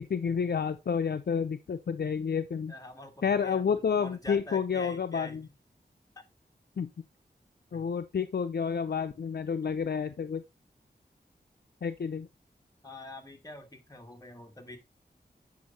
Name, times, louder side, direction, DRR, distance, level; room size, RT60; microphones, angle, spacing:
voice 1, 0.0-2.7 3.2-5.4 6.8-6.9 7.7-10.4 11.8-12.3, left 6 dB, 70° left, 0.6 m, -30 dB
voice 2, 2.7-5.5 7.7-7.9 12.8-14.8, left 1 dB, 20° left, 1.8 m, -45 dB
8.3 x 5.5 x 4.1 m
wide cardioid pair, 75°, 18 cm